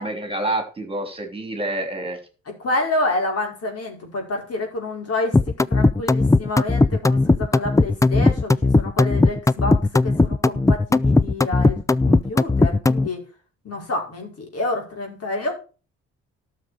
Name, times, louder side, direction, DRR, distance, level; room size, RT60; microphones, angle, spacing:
voice 1, 0.0-2.2, right 1 dB, 20° right, 5 dB, 3.4 m, -27 dB
voice 2, 2.6-5.4 5.7-11.8 12.1-13.2 13.6-15.5, left 2 dB, 55° left, 2 dB, 5.3 m, -28 dB
sound 1, 5.3-13.1, left 3 dB, 10° left, 0.4 m, -17 dB
12.5 x 6.7 x 6.3 m, 0.35 s
cardioid pair, 90°, 30 cm